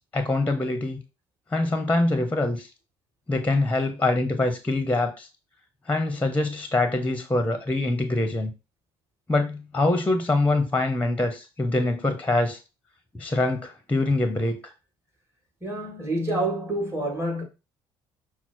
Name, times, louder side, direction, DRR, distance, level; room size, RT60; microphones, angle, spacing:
voice 1, 0.1-1.0 1.5-2.7 3.3-5.3 5.9-8.5 9.3-12.6 13.1-14.7, left 2 dB, 10° left, 0.9 m, -24 dB
voice 2, 15.6-17.4, right 1 dB, 20° right, 2.4 m, -27 dB
5.9 x 2.1 x 4.4 m
hypercardioid pair, 65°, 13 cm